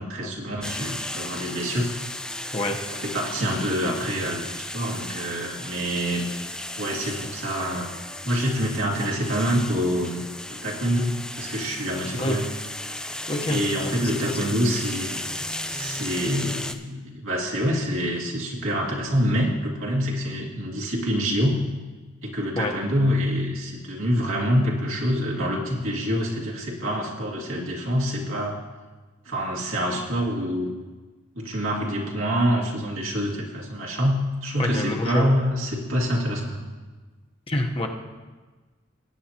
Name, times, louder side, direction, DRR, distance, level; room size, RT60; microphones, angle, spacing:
voice 1, 0.0-1.9 2.9-6.3 6.8-7.9 8.2-10.2 10.5-12.4 13.5-15.3 15.7-21.6 22.2-28.6 29.2-30.7 31.3-36.7, equal, 85° right, -3 dB, 2.2 m, -26 dB
sound 1, 0.6-16.7, left 1 dB, 5° left, 0.4 m, -35 dB
voice 2, 13.3-13.6 22.6-22.7 34.6-35.3 37.5-37.9, left 1 dB, 25° left, 2 dB, 0.9 m, -26 dB
18.5 x 9.1 x 2.9 m, 1.3 s
head